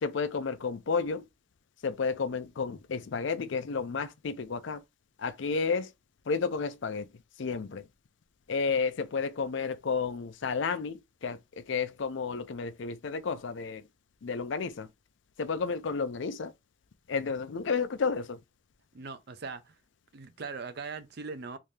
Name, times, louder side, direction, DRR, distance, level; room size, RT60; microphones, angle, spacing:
voice 1, 0.0-1.2 1.8-4.8 5.2-5.9 6.3-7.1 7.4-7.9 8.5-13.9 14.2-14.9 15.4-16.5 17.1-18.4, left 5 dB, 70° left, 0.5 m, -31 dB
voice 2, 18.9-19.8 20.1-21.6, right 4 dB, 55° right, 0.5 m, -40 dB
3.4 x 2.7 x 3.1 m
head